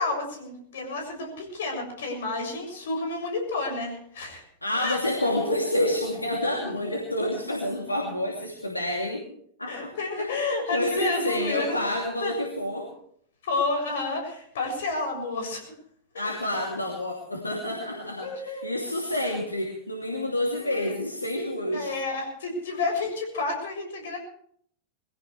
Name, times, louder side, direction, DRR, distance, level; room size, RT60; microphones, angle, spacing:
voice 1, 0.0-4.4 4.8-5.0 6.4-6.8 9.7-11.7 12.2-12.3 13.4-15.7 16.1-16.3 17.9-18.7 20.6-20.9 21.7-24.2, left 3 dB, 60° left, 3 dB, 7.0 m, -30 dB
voice 2, 4.6-9.3 9.6-9.9 10.2-10.3 10.7-12.9 16.1-21.9, left 1 dB, 85° left, -1 dB, 2.7 m, -28 dB
23.0 x 16.5 x 3.3 m, 0.64 s
figure-of-eight pair, 90°, 0 cm